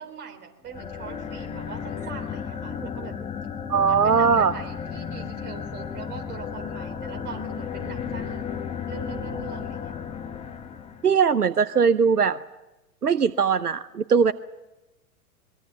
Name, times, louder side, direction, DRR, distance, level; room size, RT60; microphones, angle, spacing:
voice 1, 0.0-3.1 3.9-8.4 8.9-9.9, right 7 dB, 25° right, 4 dB, 3.6 m, -41 dB
sound 1, 0.7-11.1, left 7 dB, 15° left, 1.6 m, -34 dB
voice 2, 3.7-4.5 11.0-12.4 13.0-14.3, right 6 dB, 80° right, 16 dB, 0.8 m, -20 dB
23.5 x 22.0 x 7.4 m, 1.0 s
figure-of-eight pair, 105°, 45 cm